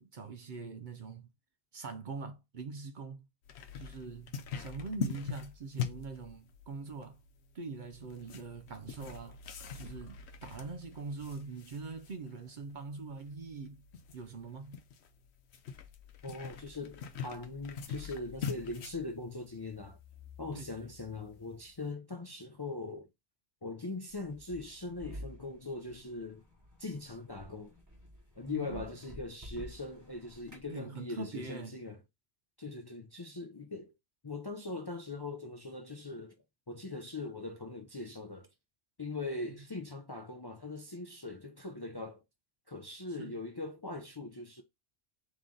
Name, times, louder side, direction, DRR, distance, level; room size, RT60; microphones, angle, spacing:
voice 1, 0.0-1.3 1.7-3.3 3.7-7.2 7.5-9.4 9.7-13.8 14.1-14.8 20.5-20.9 28.5-28.9 30.7-31.8 43.2-43.3, right 4 dB, 55° right, 0.6 m, -43 dB
sound 1, 3.5-21.9, left 6 dB, 80° left, 0.9 m, -44 dB
voice 2, 16.2-20.0 20.4-23.1 23.6-26.4 26.8-27.7 28.4-32.0 32.6-33.9 34.2-36.4 36.7-38.5 39.0-42.2 42.7-44.6, left 3 dB, 30° left, 0.4 m, -41 dB
sound 2, 24.1-30.7, equal, 15° right, 1.2 m, -50 dB
3.8 x 3.0 x 3.8 m
omnidirectional pair, 1.1 m